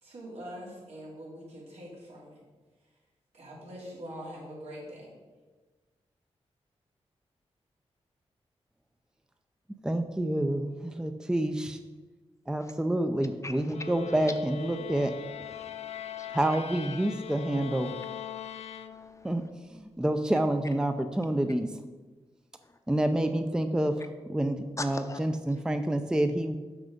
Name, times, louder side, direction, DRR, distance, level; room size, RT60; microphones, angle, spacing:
voice 1, 0.0-2.4 3.3-5.1, equal, 80° right, -4 dB, 2.6 m, -43 dB
voice 2, 9.8-11.8 12.5-15.1 16.3-17.9 19.2-19.4 19.7-21.7 22.9-23.9 24.3-26.6, right 1 dB, 5° right, 8 dB, 0.4 m, -28 dB
voice 3, 13.4-13.8 15.5-16.4 18.9-19.3 22.6-22.8 24.8-25.2, left 2 dB, 30° left, 6 dB, 0.7 m, -42 dB
sound 1, 13.7-19.4, left 8 dB, 80° left, 0.5 m, -41 dB
6.4 x 6.1 x 5.1 m, 1.3 s
wide cardioid pair, 90°, 11 cm